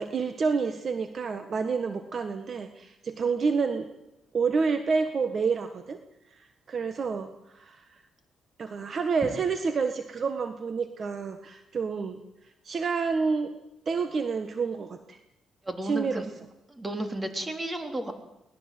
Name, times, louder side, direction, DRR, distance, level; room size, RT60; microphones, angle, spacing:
voice 1, 0.0-3.9 4.3-6.0 6.3-8.0 8.6-12.2 12.6-13.6 13.8-15.2 15.8-16.3, right 5 dB, 45° right, 8 dB, 1.6 m, -29 dB
voice 2, 15.7-16.2 16.7-18.1, right 1 dB, 20° right, 5 dB, 3.9 m, -33 dB
23.5 x 19.5 x 7.9 m, 0.89 s
cardioid pair, 90°, 0 cm